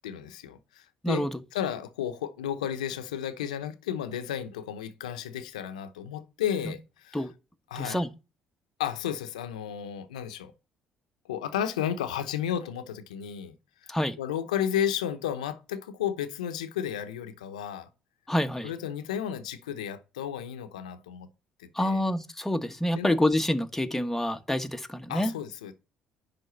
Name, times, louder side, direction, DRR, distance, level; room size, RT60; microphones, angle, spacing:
voice 1, 0.0-1.3 1.5-7.3 7.7-8.0 8.8-10.5 11.3-13.6 13.8-13.9 14.2-17.9 18.6-21.3 21.6-22.1 22.9-23.2 25.1-25.7, left 9 dB, 90° left, 0.9 m, -33 dB
voice 2, 7.7-8.1 13.9-14.1 18.3-18.7 21.8-25.3, left 1 dB, 5° left, 1.3 m, -27 dB
10.5 x 3.7 x 6.9 m
hypercardioid pair, 55°, 4 cm